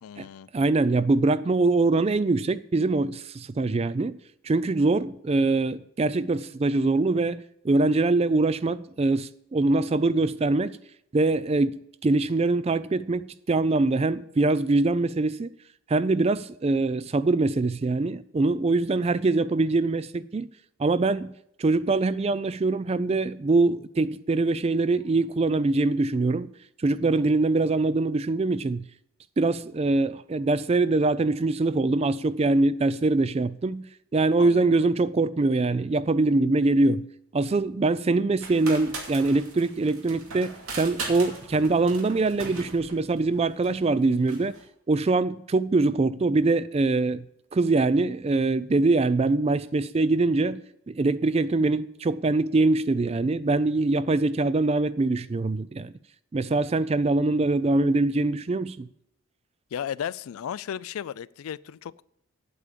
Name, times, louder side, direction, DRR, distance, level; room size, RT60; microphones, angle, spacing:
voice 1, 0.0-0.5 34.4-34.8 59.7-62.0, left 9 dB, 70° left, 0.3 m, -35 dB
voice 2, 0.5-4.2 4.4-10.8 11.1-15.5 15.9-20.5 20.8-21.3 21.6-26.5 26.8-28.8 29.4-33.9 34.1-37.0 37.3-44.5 44.9-47.2 47.5-50.6 50.9-55.9 56.3-58.9, right 3 dB, 30° right, 0.3 m, -23 dB
sound 1, 38.4-44.6, right 3 dB, 75° right, 2.4 m, -39 dB
8.7 x 8.4 x 6.8 m
head